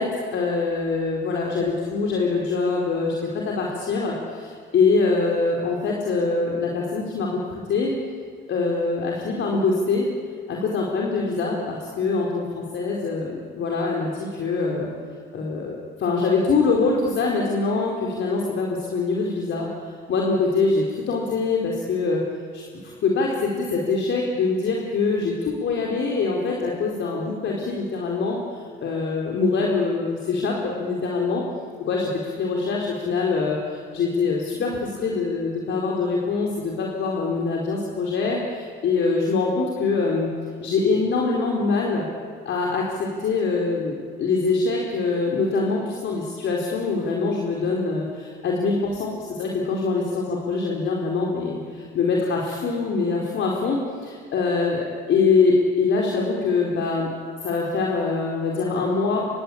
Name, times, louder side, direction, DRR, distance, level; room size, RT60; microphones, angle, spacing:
voice 1, 0.0-7.9 8.5-10.1 10.5-14.9 15.3-19.7 20.1-22.2 22.5-31.4 31.9-40.3 40.6-42.1 42.4-57.1 57.4-59.2, left 4 dB, 70° left, -1 dB, 4.5 m, -24 dB
28.0 x 23.0 x 8.8 m, 2.1 s
cardioid pair, 90°, 20 cm